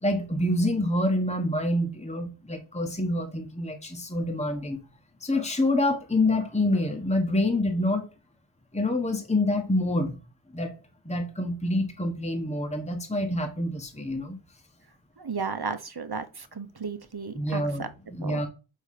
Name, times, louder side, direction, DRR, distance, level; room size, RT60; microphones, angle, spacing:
voice 1, 0.0-4.8 5.2-8.1 8.7-10.2 10.5-10.8 11.0-14.4 17.3-18.5, left 1 dB, 15° left, 1.4 m, -27 dB
voice 2, 15.2-17.9 18.2-18.4, right 5 dB, 50° right, 1.1 m, -34 dB
5.6 x 5.3 x 6.7 m
wide cardioid pair, 50°, 48 cm